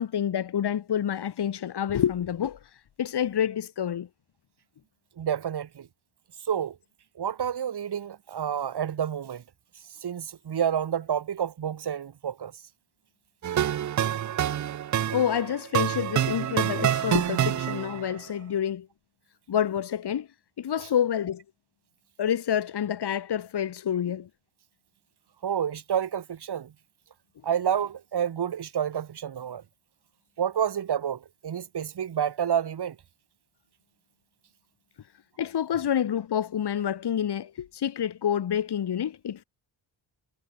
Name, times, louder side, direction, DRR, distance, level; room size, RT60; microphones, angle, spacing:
voice 1, 0.0-2.6 3.0-4.1 15.1-18.9 19.5-20.3 20.6-21.4 22.2-24.3 35.4-39.4, left 9 dB, 60° left, 2.7 m, -28 dB
voice 2, 5.2-5.9 6.4-6.8 7.2-9.4 10.0-12.6 20.8-20.9 25.4-26.7 27.4-29.6 30.4-33.0, right 8 dB, 60° right, 3.6 m, -29 dB
sound 1, 13.4-18.1, right 10 dB, 40° right, 0.6 m, -27 dB
cardioid pair, 95°, 45 cm